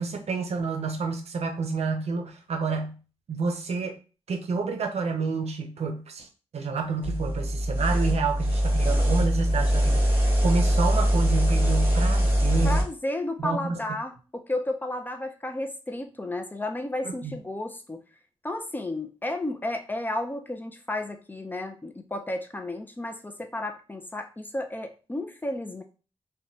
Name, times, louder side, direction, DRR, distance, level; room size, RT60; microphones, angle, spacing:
voice 1, 0.0-2.9 3.3-3.9 4.3-6.3 6.5-12.8 13.4-13.8 17.2-17.4, right 4 dB, 80° right, 5 dB, 0.6 m, -29 dB
sound 1, 7.0-12.8, equal, 20° right, 1.2 m, -22 dB
voice 2, 12.6-18.0 18.4-25.8, left 1 dB, 15° left, 5 dB, 0.4 m, -32 dB
3.0 x 2.2 x 2.6 m, 0.34 s
wide cardioid pair, 90°, 11 cm